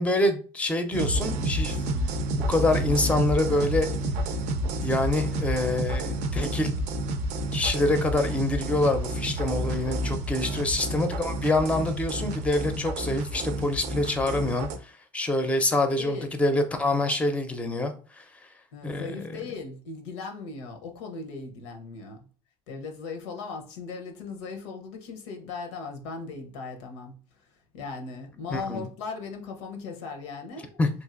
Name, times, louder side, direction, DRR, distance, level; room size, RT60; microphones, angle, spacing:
voice 1, 0.0-1.8 2.5-3.9 4.8-6.7 7.5-18.3 18.8-19.4 28.5-28.8 30.8-30.9, left 2 dB, 10° left, 0.5 m, -26 dB
sound 1, 0.9-14.8, right 1 dB, 60° right, 0.5 m, -30 dB
voice 2, 15.6-16.3 18.7-22.3 22.7-30.8, left 4 dB, 85° left, 0.7 m, -38 dB
3.2 x 2.5 x 2.4 m
supercardioid pair, 90°, 14 cm